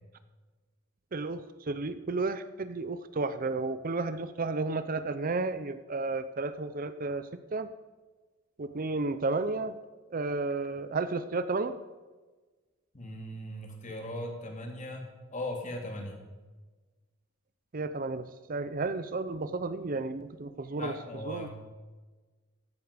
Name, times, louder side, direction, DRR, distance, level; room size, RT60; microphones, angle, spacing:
voice 1, 1.1-1.4 1.7-7.7 8.6-9.8 10.1-11.7 17.7-20.9 21.3-21.5, right 3 dB, 45° right, 12 dB, 0.6 m, -32 dB
voice 2, 12.9-16.2 20.8-21.5, left 1 dB, 35° left, 2 dB, 2.5 m, -39 dB
15.5 x 11.5 x 5.1 m, 1.3 s
head